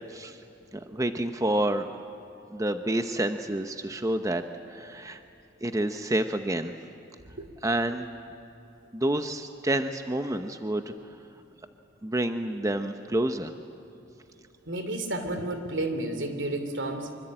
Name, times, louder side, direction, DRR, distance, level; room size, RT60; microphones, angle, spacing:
voice 1, 0.7-1.9 2.5-4.4 4.7-5.2 5.6-6.7 7.6-8.1 8.9-10.8 12.0-13.5, right 1 dB, 15° right, 7 dB, 0.8 m, -28 dB
voice 2, 14.7-17.2, right 1 dB, 75° right, 7 dB, 3.1 m, -31 dB
26.0 x 25.0 x 8.9 m, 2.9 s
head